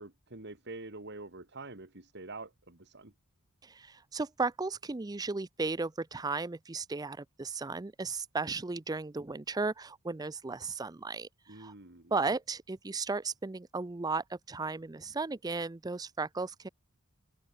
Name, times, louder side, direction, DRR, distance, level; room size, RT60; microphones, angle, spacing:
voice 1, 0.0-3.1 11.5-12.1, right 2 dB, 50° right, 2.5 m, -46 dB
voice 2, 3.6-11.7 12.1-16.7, right 3 dB, 15° right, 0.4 m, -35 dB
open air
head